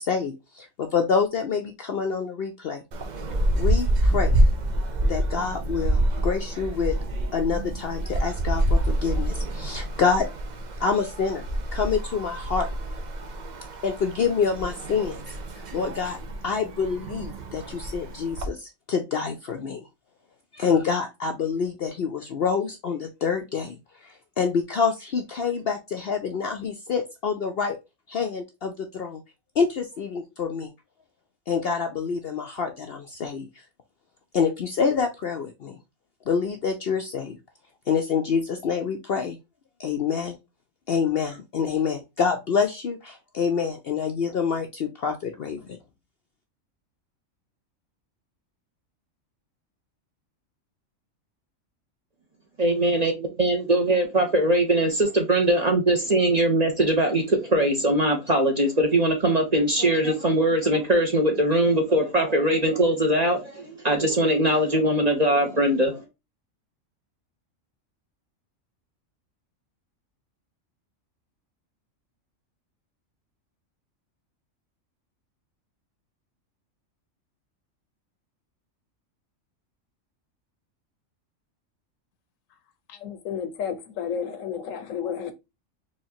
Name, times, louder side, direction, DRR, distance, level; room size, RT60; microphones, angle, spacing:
voice 1, 0.0-2.8 3.5-4.4 5.1-7.0 7.3-10.3 10.8-11.4 11.7-12.7 13.8-15.2 15.7-16.2 16.4-18.6 18.9-19.8 20.6-23.8 24.4-27.8 28.1-29.2 29.6-30.7 31.5-33.5 34.3-35.8 36.3-37.4 37.9-39.4 39.8-40.4 40.9-45.8, left 6 dB, 60° left, 0.7 m, -26 dB
sound 1, 2.9-18.5, right 1 dB, 55° right, 0.5 m, -27 dB
voice 2, 52.6-66.0, right 1 dB, 35° right, 0.8 m, -21 dB
voice 3, 82.9-85.3, left 7 dB, 75° left, 1.1 m, -32 dB
4.3 x 3.1 x 2.7 m
omnidirectional pair, 1.4 m